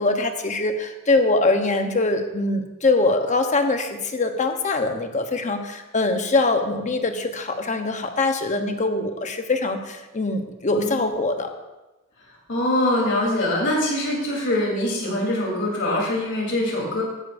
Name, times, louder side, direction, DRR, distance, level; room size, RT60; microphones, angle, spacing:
voice 1, 0.0-11.5, left 2 dB, 35° left, 6 dB, 1.0 m, -23 dB
voice 2, 10.7-11.1 12.5-17.0, left 1 dB, 60° left, -2 dB, 3.5 m, -23 dB
14.5 x 11.5 x 2.6 m, 1.1 s
head